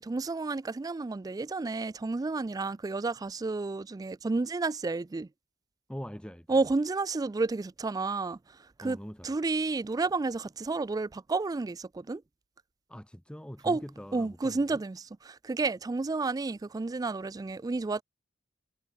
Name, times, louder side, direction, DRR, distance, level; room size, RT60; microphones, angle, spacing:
voice 1, 0.0-5.3 6.5-8.4 8.8-9.0 9.2-12.2 13.6-13.8 14.1-18.0, right 3 dB, 20° right, 0.3 m, -31 dB
voice 2, 5.9-6.6 8.8-9.3 12.9-14.8, equal, 5° left, 1.4 m, -43 dB
head